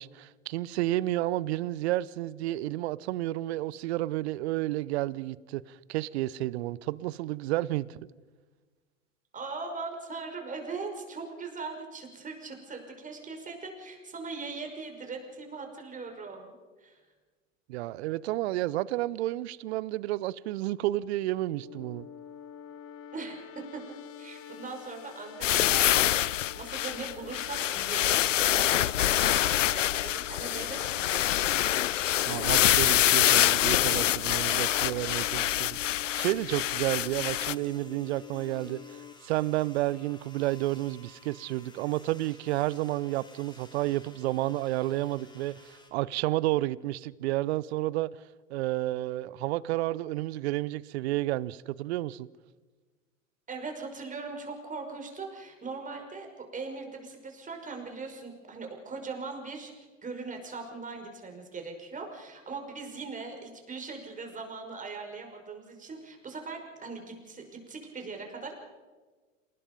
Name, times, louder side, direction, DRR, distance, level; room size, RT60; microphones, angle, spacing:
voice 1, 0.0-8.0 17.7-22.1 32.2-39.0 39.2-48.1 48.5-52.3, right 16 dB, 55° right, 0.8 m, -31 dB
voice 2, 9.3-16.6 16.8-17.0 23.1-23.8 24.2-31.4 53.5-68.5, right 4 dB, 20° right, 5.6 m, -40 dB
sound 1, 21.5-39.1, left 8 dB, 35° left, 1.9 m, -48 dB
sound 2, 25.4-37.5, left 13 dB, 75° left, 0.7 m, -25 dB
sound 3, 36.0-45.9, left 2 dB, 10° left, 4.3 m, -55 dB
27.5 x 19.5 x 5.4 m
figure-of-eight pair, 90°, 38 cm